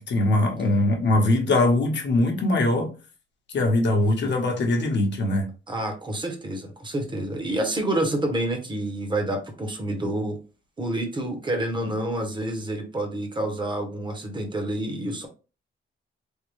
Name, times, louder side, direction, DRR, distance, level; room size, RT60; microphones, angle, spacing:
voice 1, 0.0-2.9 3.5-5.5, left 2 dB, 60° left, 0.9 m, -22 dB
voice 2, 5.7-10.4 10.8-15.3, right 1 dB, 20° right, 0.8 m, -28 dB
3.5 x 2.2 x 3.1 m
wide cardioid pair, 135°, 21 cm